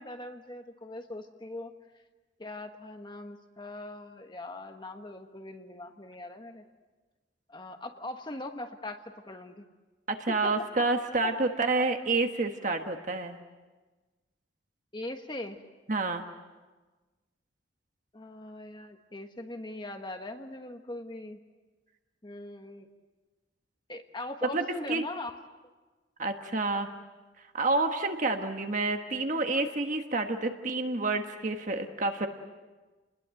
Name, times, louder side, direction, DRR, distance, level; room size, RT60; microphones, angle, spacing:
voice 1, 0.0-1.7 2.4-6.6 7.5-9.6 10.3-10.5 11.2-11.4 14.9-15.6 18.1-21.4 22.2-22.9 23.9-25.3, left 2 dB, 25° left, 5 dB, 1.3 m, -41 dB
voice 2, 10.1-13.4 15.9-16.2 24.5-25.0 26.2-26.9 27.5-32.3, right 3 dB, 40° right, 5 dB, 1.4 m, -29 dB
29.5 x 20.5 x 7.7 m, 1.3 s
head